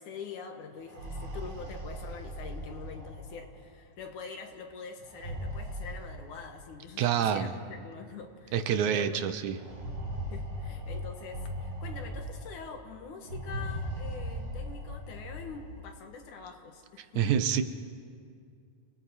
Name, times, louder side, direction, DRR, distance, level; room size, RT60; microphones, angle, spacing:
voice 1, 0.0-8.6 8.8-9.2 10.3-17.3, left 5 dB, 85° left, 4 dB, 3.0 m, -44 dB
sound 1, 0.7-3.6 5.0-6.7 7.7-7.8 8.1-8.2 9.5-12.6 13.2-15.8, equal, 55° right, 5.0 m, -38 dB
voice 2, 7.0-7.5 8.5-9.6 17.2-17.6, right 8 dB, 80° right, 9 dB, 2.3 m, -27 dB
29.5 x 19.0 x 4.8 m, 2.2 s
omnidirectional pair, 3.4 m